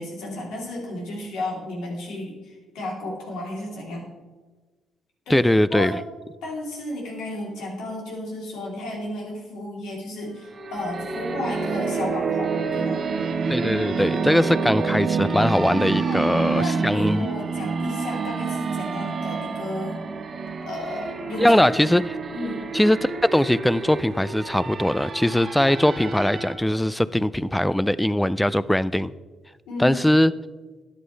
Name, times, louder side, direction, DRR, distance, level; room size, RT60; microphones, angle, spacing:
voice 1, 0.0-4.1 5.3-5.4 5.7-6.0 6.4-13.1 16.0-20.0 20.7-21.9 22.3-22.7 29.7-30.0, left 1 dB, 90° left, -2 dB, 3.4 m, -33 dB
voice 2, 5.3-6.0 13.5-17.3 21.4-22.2 22.7-29.1 29.8-30.3, left 1 dB, 5° left, 17 dB, 0.4 m, -21 dB
sound 1, 10.4-26.5, right 3 dB, 45° right, 1.4 m, -33 dB
sound 2, 10.8-22.1, right 6 dB, 60° right, 0.5 m, -28 dB
13.5 x 9.6 x 3.3 m, 1.3 s
cardioid pair, 90°, 0 cm